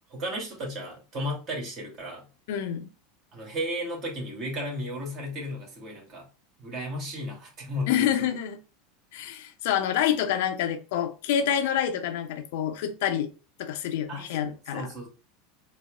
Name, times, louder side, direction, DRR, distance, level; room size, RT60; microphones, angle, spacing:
voice 1, 0.1-2.2 3.3-6.3 6.6-8.3 14.1-14.3 14.7-15.1, equal, 45° right, 1.8 m, -34 dB
voice 2, 2.5-2.9 7.9-8.6 9.1-13.3 13.6-14.9, left 9 dB, 70° left, 0.6 m, -27 dB
4.1 x 2.0 x 3.4 m
hypercardioid pair, 95°, 0 cm